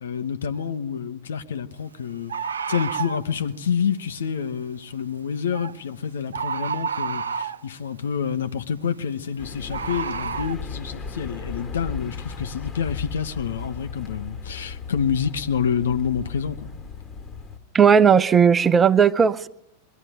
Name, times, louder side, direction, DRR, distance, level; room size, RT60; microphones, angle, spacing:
voice 1, 0.0-2.3 2.7-16.6, left 7 dB, 65° left, 1.2 m, -28 dB
Bird, 0.6-0.7 2.3-3.2 5.5-5.8 6.3-7.7 9.7-10.6, right 6 dB, 70° right, 0.8 m, -29 dB
sound 1, 9.4-17.6, left 4 dB, 20° left, 2.4 m, -36 dB
voice 2, 17.7-19.5, right 7 dB, 20° right, 0.7 m, -16 dB
22.0 x 13.0 x 9.3 m
figure-of-eight pair, 90°, 0 cm